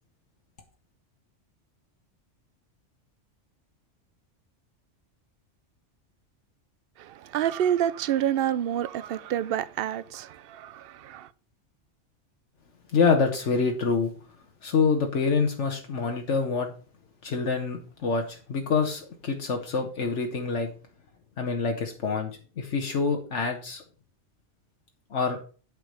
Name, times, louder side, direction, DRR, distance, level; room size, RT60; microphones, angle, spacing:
voice 1, 7.0-11.3, right 10 dB, 60° right, 0.7 m, -28 dB
voice 2, 12.9-14.1 14.6-16.7 17.2-20.7 21.4-23.8 25.1-25.4, left 5 dB, 75° left, 1.4 m, -26 dB
8.2 x 4.8 x 6.5 m
omnidirectional pair, 1.2 m